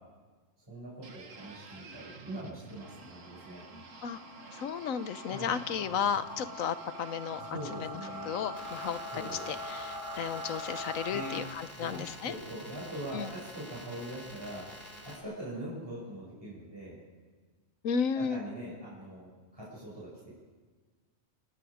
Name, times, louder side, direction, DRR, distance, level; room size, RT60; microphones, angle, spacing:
voice 1, 0.7-3.6 5.3-5.5 7.5-8.3 9.1-9.5 11.1-11.4 11.8-14.6 15.2-17.0 18.1-20.3, right 1 dB, 20° right, -6 dB, 6.4 m, -42 dB
sound 1, 1.0-9.0, right 4 dB, 75° right, 1.8 m, -51 dB
sound 2, 2.7-11.4, left 1 dB, 65° left, 7.6 m, -43 dB
voice 2, 4.5-7.4 7.7-8.0 8.2-12.3 13.1-13.3 17.8-18.4, left 7 dB, 85° left, 13 dB, 1.3 m, -34 dB
sound 3, 8.5-15.2, equal, 35° left, 3.7 m, -48 dB
29.0 x 18.5 x 5.0 m, 1.4 s
omnidirectional pair, 1.4 m